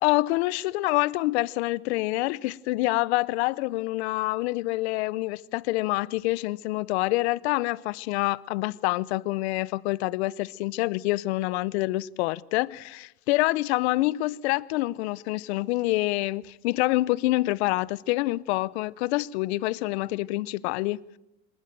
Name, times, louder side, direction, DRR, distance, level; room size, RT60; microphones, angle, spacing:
voice 1, 0.0-21.0, left 19 dB, 80° left, 0.8 m, -26 dB
27.0 x 13.0 x 9.1 m
supercardioid pair, 90°, 33 cm